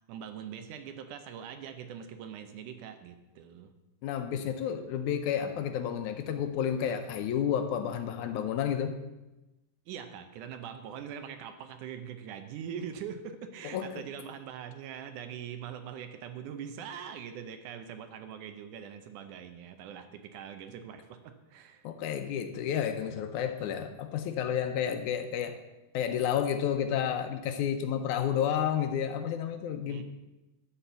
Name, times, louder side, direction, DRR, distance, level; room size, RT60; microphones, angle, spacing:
voice 1, 0.1-3.7 9.9-21.9 24.7-24.8 29.9-30.0, right 8 dB, 80° right, 8 dB, 2.2 m, -42 dB
voice 2, 4.0-9.0 13.7-14.0 21.8-25.6 25.9-30.0, left 9 dB, 75° left, 8 dB, 2.0 m, -31 dB
11.5 x 4.3 x 8.0 m, 1.0 s
omnidirectional pair, 3.6 m